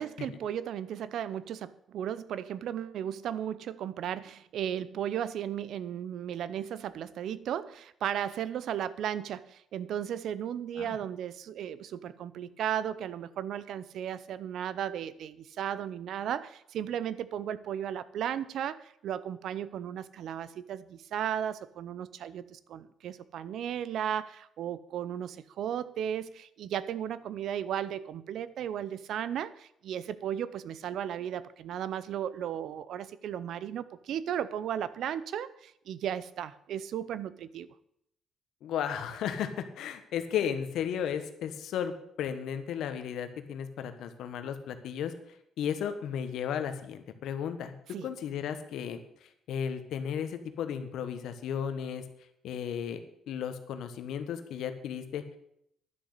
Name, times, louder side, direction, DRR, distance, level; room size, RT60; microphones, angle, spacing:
voice 1, 0.0-37.7 47.9-48.1, right 9 dB, 75° right, 16 dB, 0.6 m, -35 dB
voice 2, 38.6-45.1 45.6-47.7 48.0-52.0 52.4-53.0 53.3-55.2, left 8 dB, 80° left, 9 dB, 1.3 m, -34 dB
11.0 x 6.5 x 8.3 m, 0.74 s
cardioid pair, 90°, 0 cm